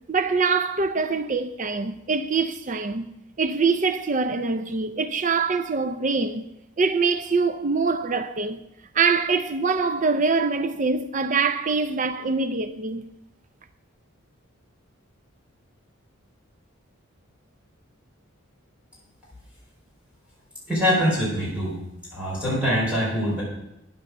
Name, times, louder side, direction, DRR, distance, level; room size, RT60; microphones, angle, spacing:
voice 1, 0.1-3.1 3.4-6.5 6.8-8.6 8.9-13.0, right 4 dB, 35° right, 0.5 m, -24 dB
voice 2, 20.7-21.7 22.1-23.4, equal, 5° right, 4.6 m, -23 dB
10.0 x 8.9 x 6.5 m
head